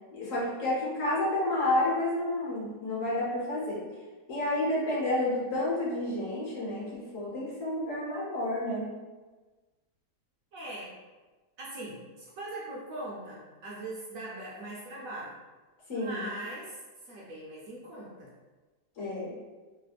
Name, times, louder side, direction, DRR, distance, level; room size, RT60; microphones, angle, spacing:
voice 1, 0.1-3.8 4.3-8.9 15.9-16.3 19.0-19.3, left 1 dB, 55° left, -7 dB, 1.2 m, -30 dB
voice 2, 10.5-10.9 11.6-15.4 15.9-16.8 17.0-18.3, right 1 dB, 65° right, -5 dB, 0.9 m, -40 dB
3.1 x 2.1 x 3.2 m, 1.3 s
omnidirectional pair, 1.8 m